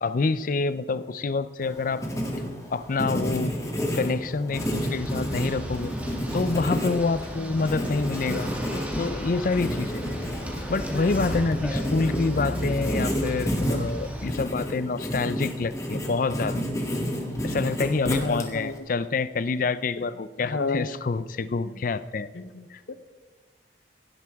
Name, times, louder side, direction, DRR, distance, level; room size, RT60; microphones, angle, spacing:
voice 1, 0.0-2.0 2.7-3.5 3.9-5.9 6.3-8.5 9.0-10.0 10.7-16.6 17.4-22.3 22.7-22.8, left 4 dB, 50° left, 15 dB, 0.5 m, -27 dB
Writing, 1.6-18.8, equal, 20° left, 1.9 m, -30 dB
sound 1, 4.5-14.3, equal, 10° right, 1.7 m, -35 dB
voice 2, 18.2-18.7 20.4-20.9 22.4-22.9, left 3 dB, 75° left, 12 dB, 0.7 m, -31 dB
16.5 x 12.5 x 3.6 m, 1.4 s
head